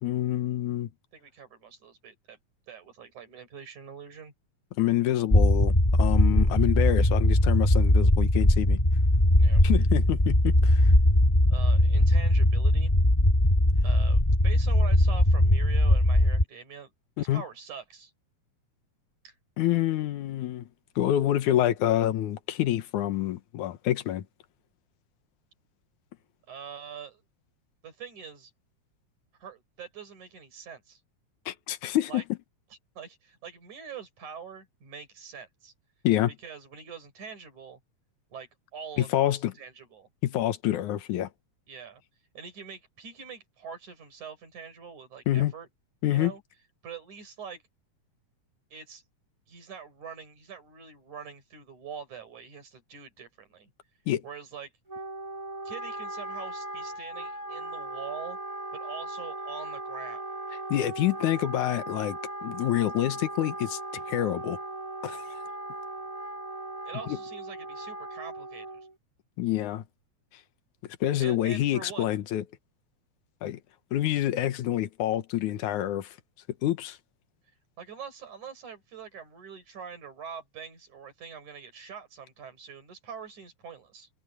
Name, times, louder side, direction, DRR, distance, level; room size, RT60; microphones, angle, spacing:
voice 1, 0.0-0.9 4.8-8.8 9.6-10.9 17.3-17.4 19.6-20.7 21.0-24.2 31.5-32.2 36.0-36.3 39.0-39.5 40.2-41.3 45.3-45.5 46.0-46.3 54.1-54.2 60.7-63.8 64.1-64.6 65.0-65.4 69.4-69.8 71.0-72.4 73.4-73.6 73.9-76.2 76.6-77.0, left 13 dB, 90° left, 2.6 m, -27 dB
voice 2, 1.1-2.4 2.7-4.3 6.2-6.3 9.4-9.6 11.5-12.9 13.8-16.9 17.2-18.1 19.2-19.4 26.5-27.2 27.8-28.5 29.4-31.0 32.1-32.2 32.7-35.7 36.4-37.8 38.3-40.1 41.7-42.0 42.4-45.7 46.1-46.4 46.8-47.6 48.7-49.0 49.5-53.7 54.2-54.7 55.7-58.4 58.7-60.2 66.9-68.9 71.2-72.1 77.8-84.1, right 6 dB, 80° right, 7.0 m, -44 dB
sound 1, 5.3-16.4, left 1 dB, 15° left, 1.3 m, -20 dB
Wind instrument woodwind instrument, 54.9-68.9, right 2 dB, 10° right, 2.9 m, -38 dB
omnidirectional pair, 3.4 m